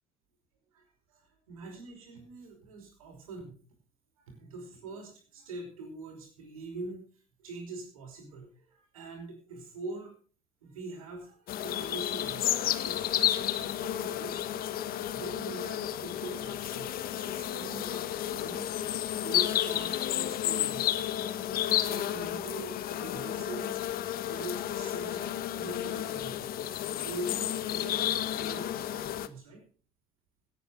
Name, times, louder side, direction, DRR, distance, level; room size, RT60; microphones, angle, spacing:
voice 1, 0.7-3.6 4.2-7.1 7.4-10.1 10.6-14.4 15.1-18.8 19.2-20.9 21.7-23.7 24.1-26.5 27.0-29.6, right 2 dB, 85° right, 2 dB, 5.5 m, -43 dB
sound 1, 11.5-29.3, left 12 dB, 60° left, 1.2 m, -32 dB
17.5 x 9.7 x 5.2 m, 0.41 s
hypercardioid pair, 60°, 18 cm